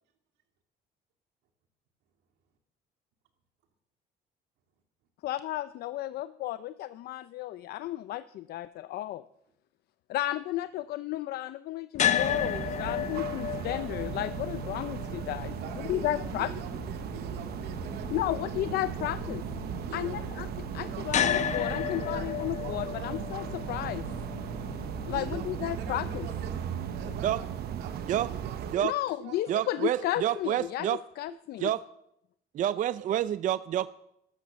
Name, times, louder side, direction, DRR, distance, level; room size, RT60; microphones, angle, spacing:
voice 1, 5.2-9.2 10.1-16.5 18.1-19.4 19.9-20.5 20.7-24.0 25.1-26.3 28.8-30.9 31.2-31.7, left 15 dB, 70° left, 14 dB, 0.5 m, -33 dB
sound 1, 11.9-28.1, left 9 dB, 45° left, 0.9 m, -35 dB
sound 2, 12.2-28.8, right 10 dB, 70° right, 1.0 m, -37 dB
voice 2, 15.6-18.6 18.9-19.3 19.8-21.3 21.7-22.3 22.6-23.1 25.1-26.5 27.0-27.5 27.8-30.4, right 7 dB, 85° right, 5 dB, 2.4 m, -45 dB
voice 3, 29.5-31.0 31.6-31.8 32.5-33.9, right 11 dB, 50° right, 16 dB, 0.4 m, -28 dB
13.0 x 12.5 x 6.3 m, 0.79 s
cardioid pair, 110°, 17 cm